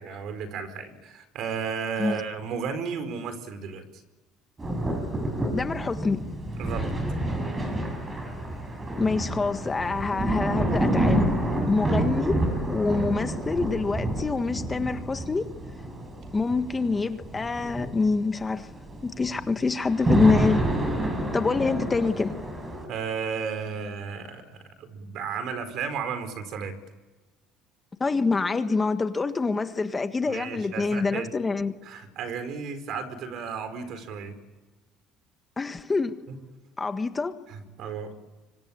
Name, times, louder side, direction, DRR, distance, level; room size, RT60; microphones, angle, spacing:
voice 1, 0.0-3.9 6.6-6.9 22.8-26.7 30.3-31.3 31.8-34.4 36.3-36.4 37.5-38.2, right 6 dB, 60° right, 4.6 m, -33 dB
sound 1, 4.6-22.9, right 1 dB, 20° right, 7.6 m, -28 dB
voice 2, 5.5-6.2 9.0-11.3 11.7-12.4 12.6-15.5 16.3-18.7 19.0-20.6 21.3-22.3 28.0-31.7 35.6-36.2 36.8-37.4, left 4 dB, 20° left, 1.6 m, -26 dB
25.5 x 25.0 x 8.8 m
cardioid pair, 115°, 0 cm